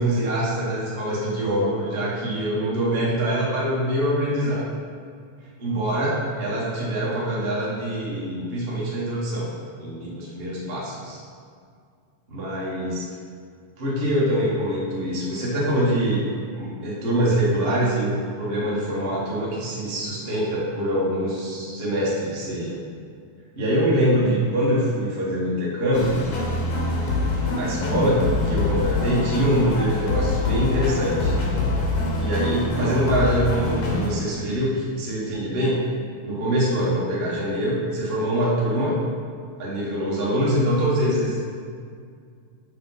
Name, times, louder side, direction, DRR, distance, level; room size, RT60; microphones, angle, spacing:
voice 1, 0.0-4.7 5.6-11.2 12.3-13.0 13.8-16.2 16.5-18.1 18.4-22.8 23.5-26.2 27.6-31.3 32.2-35.9 36.2-39.0 39.6-41.4, equal, 40° right, -6 dB, 0.8 m, -24 dB
sound 1, 25.9-34.1, left 2 dB, 70° left, 2.2 m, -24 dB
6.7 x 5.4 x 4.0 m, 2.2 s
omnidirectional pair, 3.6 m